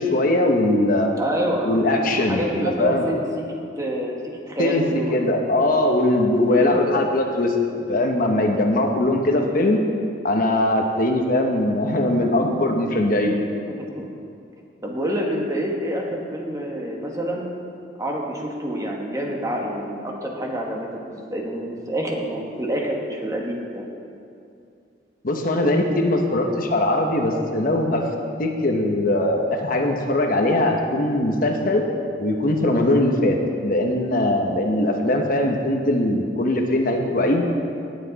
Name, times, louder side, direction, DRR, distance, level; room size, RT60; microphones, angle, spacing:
voice 1, 0.0-1.1 1.6-3.1 4.6-4.8 5.1-9.8 10.2-13.4 25.2-28.0 28.4-31.8 32.2-33.4 33.6-37.5, left 1 dB, 50° left, 3 dB, 1.0 m, -21 dB
voice 2, 1.2-3.4 3.8-4.2 4.5-5.2 6.5-6.8 13.7-14.1 14.8-17.4 18.0-23.9, equal, 20° right, -1 dB, 1.4 m, -27 dB
18.5 x 8.4 x 4.1 m, 2.5 s
head